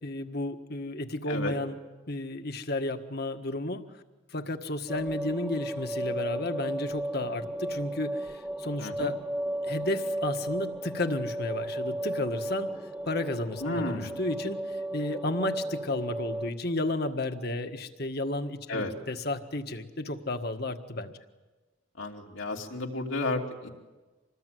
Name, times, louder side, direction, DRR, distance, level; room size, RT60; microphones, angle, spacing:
voice 1, 0.0-1.8 2.1-3.8 4.3-9.2 9.6-12.8 13.0-21.2, left 2 dB, 50° left, 7 dB, 1.6 m, -32 dB
sound 1, 4.9-16.5, right 1 dB, 10° right, 1.1 m, -34 dB
voice 2, 8.8-9.1 13.6-14.2 18.7-18.9 22.0-23.7, left 2 dB, 80° left, 0 dB, 3.0 m, -32 dB
26.5 x 20.0 x 9.4 m, 1.2 s
head